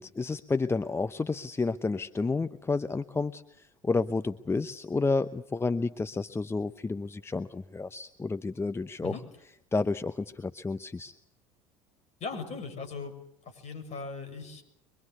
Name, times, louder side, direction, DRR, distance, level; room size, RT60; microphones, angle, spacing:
voice 1, 0.0-9.1 9.7-11.2, left 3 dB, 15° left, 12 dB, 0.9 m, -30 dB
voice 2, 12.2-13.1 13.5-14.6, left 4 dB, 40° left, 7 dB, 7.1 m, -38 dB
24.5 x 23.5 x 8.2 m, 0.74 s
figure-of-eight pair, 65°, 17 cm